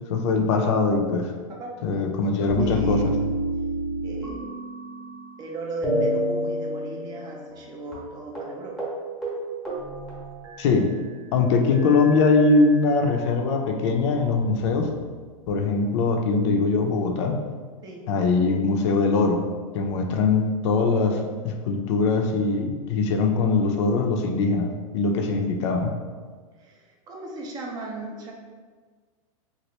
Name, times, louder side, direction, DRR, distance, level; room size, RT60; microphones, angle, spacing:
voice 1, 0.1-1.3 1.8-3.1 10.6-10.9 11.3-14.9 15.5-17.4 18.1-19.4 19.7-25.9, left 3 dB, 55° left, 3 dB, 0.5 m, -22 dB
voice 2, 1.5-2.0 2.4-3.3 4.0-4.4 5.4-8.8 17.8-18.1 26.6-28.3, right 2 dB, 20° right, 0 dB, 0.5 m, -36 dB
sound 1, 2.5-5.4 5.8-7.7 7.9-8.0 8.3-8.5 8.8-9.0 9.2-10.9 11.7-13.3 14.0-14.9, equal, ahead, 0.9 m, -30 dB
3.0 x 2.5 x 2.9 m, 1.5 s
supercardioid pair, 140°, 18 cm